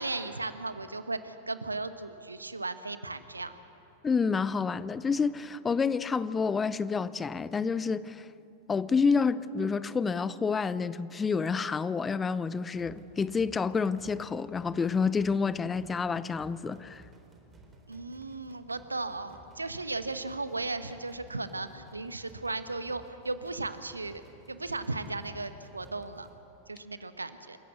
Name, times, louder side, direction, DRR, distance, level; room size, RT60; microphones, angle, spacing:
voice 1, 0.0-3.6 17.9-24.2 24.5-26.3 26.7-27.6, right 3 dB, 80° right, 1.0 m, -36 dB
voice 2, 4.0-8.3 8.7-17.0, left 5 dB, 15° left, 0.6 m, -29 dB
sound 1, 12.7-26.4, right 2 dB, 20° right, 3.7 m, -56 dB
27.5 x 15.0 x 8.1 m
figure-of-eight pair, 90°, 0 cm